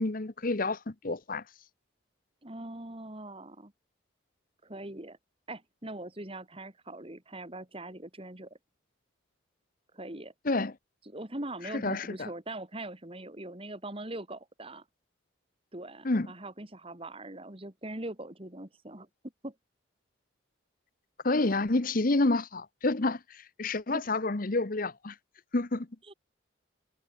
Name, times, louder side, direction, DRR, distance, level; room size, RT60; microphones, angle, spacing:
voice 1, 0.0-1.4 10.4-10.7 11.8-12.3 16.0-16.3 21.2-25.1 25.5-25.9, left 2 dB, 45° left, 1.0 m, -29 dB
voice 2, 2.4-3.7 4.6-5.2 5.5-8.6 9.9-10.3 11.1-14.8 15.7-19.1 19.4-19.5 23.9-24.0 26.1-26.2, right 1 dB, 30° right, 2.3 m, -41 dB
head